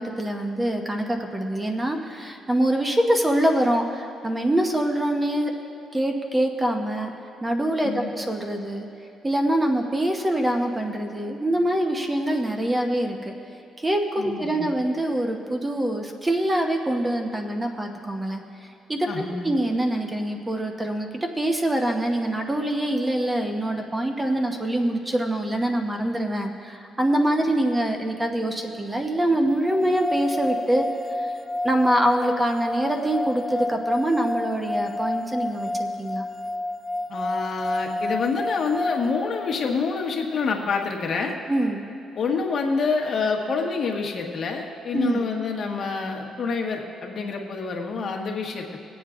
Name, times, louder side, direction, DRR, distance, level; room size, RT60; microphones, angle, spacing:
voice 1, 0.0-5.5 5.9-7.1 7.4-8.9 9.2-13.3 13.8-18.4 18.9-21.1 21.4-30.9 31.2-31.3 31.6-36.3 41.5-41.8 44.9-45.2, right 1 dB, 15° right, 3 dB, 0.9 m, -24 dB
voice 2, 14.2-14.7 19.1-19.6 37.1-41.3 42.1-48.8, left 4 dB, 55° left, 1 dB, 1.3 m, -27 dB
sound 1, 29.6-39.8, left 2 dB, 5° left, 0.4 m, -30 dB
24.5 x 8.4 x 2.5 m, 2.8 s
cardioid pair, 90°, 0 cm